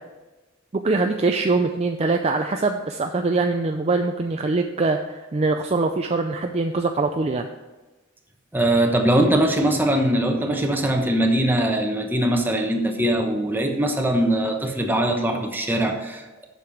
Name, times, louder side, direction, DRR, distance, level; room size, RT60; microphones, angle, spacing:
voice 1, 0.7-7.5, right 3 dB, 30° right, 4 dB, 0.5 m, -23 dB
voice 2, 8.5-16.4, right 1 dB, 10° right, 3 dB, 1.1 m, -21 dB
7.7 x 6.8 x 7.1 m, 1.1 s
head